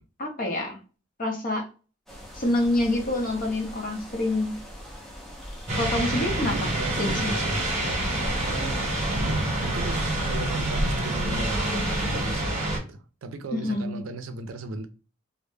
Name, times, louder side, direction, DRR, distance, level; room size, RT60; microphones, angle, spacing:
voice 1, 0.2-0.8 1.2-1.7 2.3-4.5 5.8-6.7 7.0-7.4 13.5-14.0, left 1 dB, 45° left, 0.7 m, -27 dB
sound 1, 2.1-12.4, equal, ahead, 0.5 m, -37 dB
sound 2, 5.7-12.8, right 1 dB, 35° right, 0.9 m, -27 dB
voice 2, 6.4-7.6 8.2-8.8 9.1-14.9, right 2 dB, 75° right, 0.4 m, -36 dB
2.1 x 2.0 x 3.1 m
head